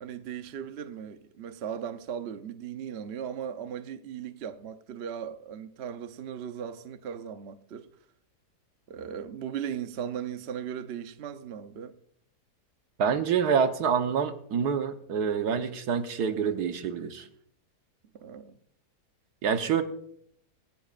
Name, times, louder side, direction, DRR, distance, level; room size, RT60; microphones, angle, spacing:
voice 1, 0.0-7.9 8.9-11.9 18.1-18.6, right 8 dB, 55° right, 0.8 m, -37 dB
voice 2, 13.0-17.3 19.4-19.8, right 7 dB, 75° right, 1.5 m, -27 dB
25.0 x 10.5 x 2.4 m
omnidirectional pair, 1.7 m